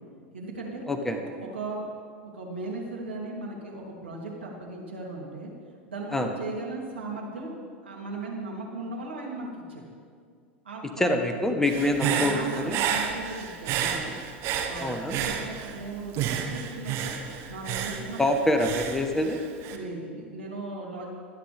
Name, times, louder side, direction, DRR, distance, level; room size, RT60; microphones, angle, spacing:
voice 1, 0.3-0.8 1.5-1.8 2.3-5.5 5.9-7.5 7.8-9.8 10.6-11.1 11.8-14.1 14.7-17.2 17.5-18.2 19.7-21.1, right 2 dB, 75° right, -2 dB, 3.0 m, -37 dB
voice 2, 0.9-1.2 6.1-6.3 11.0-12.8 14.8-15.2 18.2-19.4, left 1 dB, 5° left, 5 dB, 1.2 m, -25 dB
Human voice / Breathing, 11.6-15.8 16.1-19.8, right 8 dB, 45° right, 1.4 m, -31 dB
24.5 x 9.8 x 3.5 m, 2.1 s
figure-of-eight pair, 80°, 6 cm